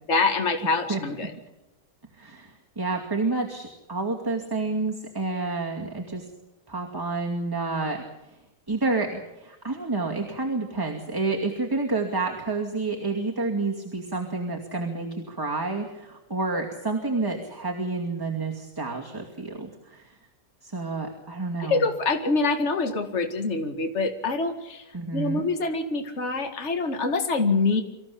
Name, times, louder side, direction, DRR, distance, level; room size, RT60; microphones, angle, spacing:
voice 1, 0.1-1.3 21.6-24.9 25.1-27.8, left 3 dB, 45° left, 6 dB, 2.3 m, -25 dB
voice 2, 0.9-1.3 2.2-6.3 6.7-8.4 8.7-20.2 20.6-21.8 24.9-25.4, right 3 dB, 15° right, 0 dB, 2.4 m, -29 dB
25.0 x 15.5 x 8.7 m, 0.97 s
omnidirectional pair, 1.7 m